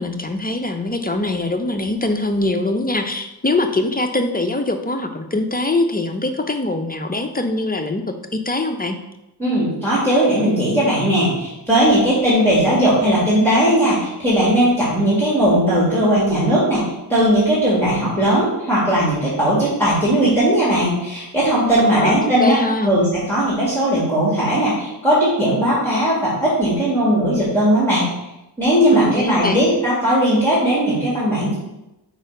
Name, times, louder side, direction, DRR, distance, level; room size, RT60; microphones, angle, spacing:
voice 1, 0.0-8.0 8.3-9.0 21.8-22.9 28.9-29.6, left 2 dB, 20° left, 6 dB, 0.5 m, -22 dB
voice 2, 9.4-22.6 22.8-28.1 28.6-31.5, right 1 dB, 5° left, -9 dB, 1.8 m, -18 dB
4.4 x 4.1 x 5.2 m, 0.93 s
wide cardioid pair, 90°, 44 cm